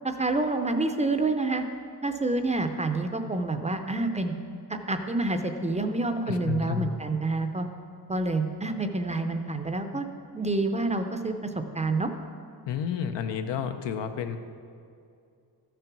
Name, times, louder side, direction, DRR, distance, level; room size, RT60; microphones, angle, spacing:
voice 1, 0.0-1.7 2.0-4.3 4.7-7.7 8.1-10.1 10.3-12.1, right 2 dB, 15° right, 6 dB, 0.5 m, -28 dB
voice 2, 6.3-6.9 12.7-14.4, left 8 dB, 90° left, 8 dB, 0.8 m, -31 dB
13.0 x 6.7 x 6.0 m, 2.5 s
wide cardioid pair, 155°, 41 cm